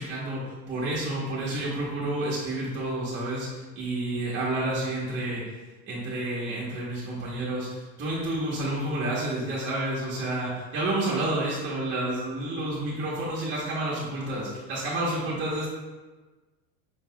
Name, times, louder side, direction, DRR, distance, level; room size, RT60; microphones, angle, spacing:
voice 1, 0.0-5.4 5.9-15.7, right 1 dB, 25° right, -7 dB, 1.0 m, -30 dB
5.0 x 3.9 x 2.2 m, 1.3 s
supercardioid pair, 135°, 45 cm